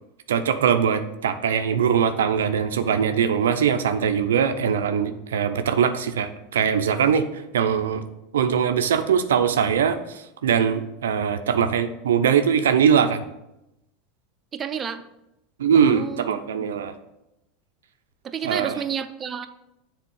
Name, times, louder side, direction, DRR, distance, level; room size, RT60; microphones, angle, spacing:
voice 1, 0.3-8.0 8.3-13.2 15.6-16.9 18.4-18.8, right 7 dB, 80° right, 9 dB, 0.5 m, -21 dB
voice 2, 14.5-15.0 15.7-16.3 16.6-16.7 18.2-19.5, right 8 dB, 30° right, 8 dB, 0.5 m, -30 dB
7.4 x 3.6 x 5.5 m, 0.89 s
hypercardioid pair, 90°, 0 cm